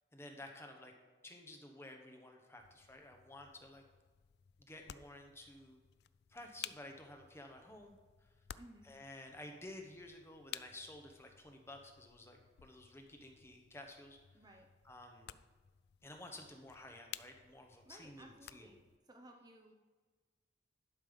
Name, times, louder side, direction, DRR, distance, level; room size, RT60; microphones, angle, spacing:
voice 1, 0.1-0.9 1.2-3.8 4.6-5.8 6.3-8.3 8.8-14.2 14.8-15.4 16.0-18.7, left 1 dB, 15° left, 3 dB, 1.0 m, -53 dB
sound 1, 2.6-19.0, left 11 dB, 60° left, 0.3 m, -55 dB
voice 2, 8.5-9.0 14.3-14.7 17.8-18.8 19.1-19.7, right 1 dB, 20° right, 3 dB, 0.6 m, -58 dB
11.5 x 5.3 x 5.3 m, 1.4 s
head